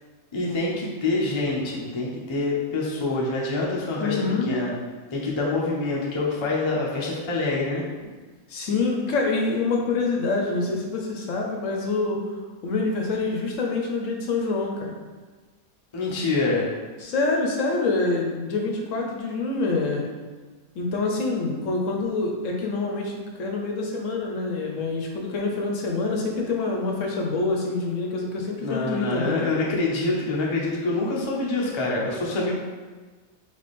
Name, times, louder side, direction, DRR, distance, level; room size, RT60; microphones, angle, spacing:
voice 1, 0.3-4.7 5.1-7.8 15.9-16.7 28.6-32.5, left 2 dB, 30° left, -4 dB, 0.5 m, -26 dB
voice 2, 4.0-4.5 8.5-12.2 12.6-14.9 17.0-20.0 20.8-29.6, left 3 dB, 70° left, 0 dB, 0.9 m, -26 dB
3.4 x 3.3 x 4.1 m, 1.4 s
omnidirectional pair, 1.5 m